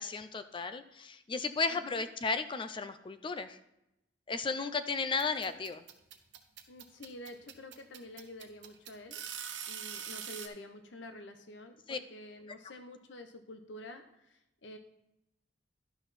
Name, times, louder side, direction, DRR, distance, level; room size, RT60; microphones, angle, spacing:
voice 1, 0.0-3.6 4.3-5.8 11.9-12.0, left 4 dB, 30° left, 10 dB, 0.4 m, -34 dB
voice 2, 1.7-2.1 6.7-9.2 9.7-14.8, left 1 dB, 90° left, 7 dB, 0.8 m, -49 dB
sound 1, 5.2-10.5, right 8 dB, 90° right, 1.0 m, -42 dB
11.5 x 6.0 x 4.1 m, 0.85 s
head